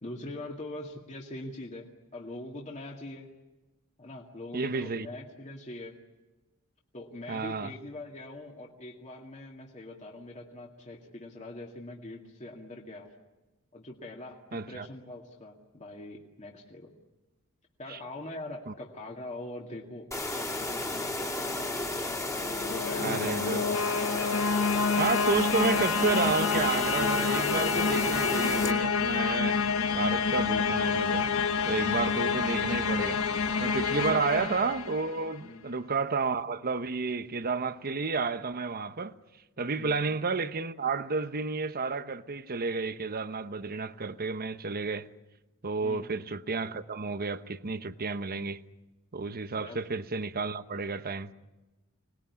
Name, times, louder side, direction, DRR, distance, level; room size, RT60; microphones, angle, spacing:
voice 1, 0.0-3.3 4.0-6.0 6.9-13.1 13.7-16.9 17.8-21.6 22.6-23.7 35.4-35.6 39.8-40.0 45.8-46.1 49.6-49.8, left 1 dB, 35° left, 2.3 m, -43 dB
voice 2, 4.5-5.1 7.3-7.7 14.5-14.9 17.9-18.0 18.7-18.8 23.0-23.6 25.0-29.6 29.9-31.3 31.7-33.2 33.6-39.1 39.6-45.1 45.6-48.6 49.1-51.3, right 4 dB, 45° right, 1.0 m, -31 dB
sound 1, 20.1-28.7, left 2 dB, 15° left, 2.6 m, -33 dB
sound 2, 22.3-35.3, left 5 dB, 70° left, 1.2 m, -28 dB
26.0 x 20.0 x 9.8 m
head